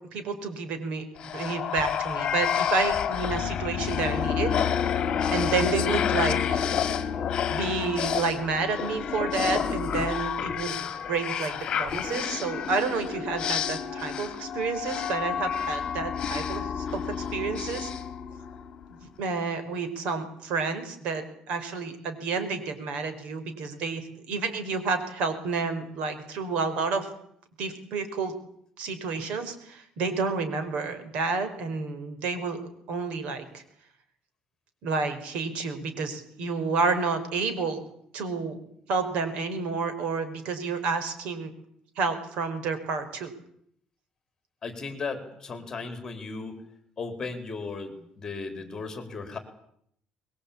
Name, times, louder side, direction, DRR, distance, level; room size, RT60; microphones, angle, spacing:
voice 1, 0.1-1.0 1.3-4.5 5.3-6.6 7.5-17.9 18.9-27.1 27.6-28.3 28.8-32.6 32.9-33.6 34.8-37.8 38.1-38.6 38.9-41.5 42.0-43.3, right 4 dB, 65° right, 10 dB, 4.9 m, -30 dB
sound 1, 1.2-18.8, left 8 dB, 40° left, 2.3 m, -29 dB
voice 2, 44.6-46.6 47.0-49.4, left 4 dB, 25° left, 7 dB, 4.1 m, -36 dB
23.5 x 22.0 x 8.7 m, 0.69 s
cardioid pair, 160°, 2 cm